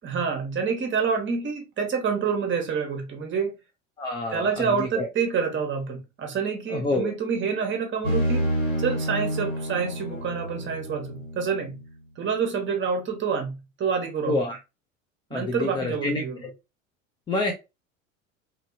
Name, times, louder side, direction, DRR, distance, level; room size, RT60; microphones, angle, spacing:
voice 1, 0.0-3.5 4.3-8.5 8.8-11.8 12.2-14.4 15.3-16.4, right 6 dB, 30° right, 1.0 m, -27 dB
voice 2, 4.0-5.1 6.7-7.1 14.3-14.6 15.3-16.5 17.3-17.5, left 2 dB, 15° left, 0.3 m, -28 dB
sound 1, 8.0-11.8, equal, 75° left, 1.5 m, -28 dB
2.7 x 2.6 x 2.6 m
hypercardioid pair, 80°, 40 cm